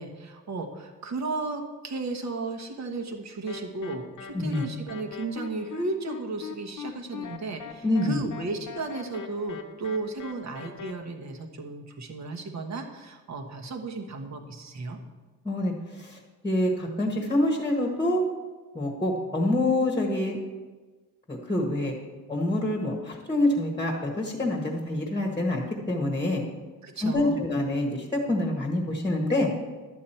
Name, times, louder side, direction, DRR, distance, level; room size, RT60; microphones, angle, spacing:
voice 1, 0.0-15.0 26.8-27.4, right 3 dB, 45° right, 4 dB, 1.2 m, -34 dB
sound 1, 3.5-10.9, left 7 dB, 55° left, 0.9 m, -41 dB
voice 2, 7.8-8.2 15.4-16.2 16.4-18.2 18.7-20.4 21.3-21.9 22.3-26.4 27.0-29.5, left 1 dB, 10° left, 0 dB, 1.3 m, -26 dB
12.0 x 8.5 x 4.4 m, 1.3 s
cardioid pair, 150°, 37 cm